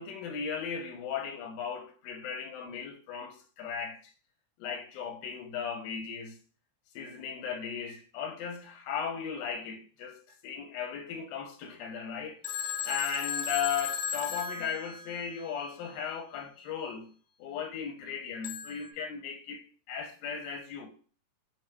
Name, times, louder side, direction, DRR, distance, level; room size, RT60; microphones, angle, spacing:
voice 1, 0.0-4.1 4.6-6.4 6.9-12.4 12.8-17.1 17.4-20.9, left 7 dB, 90° left, 2.5 m, -37 dB
Telephone, 12.4-15.5 18.4-18.9, left 7 dB, 75° left, 2.0 m, -35 dB
6.6 x 3.3 x 2.2 m
omnidirectional pair, 4.0 m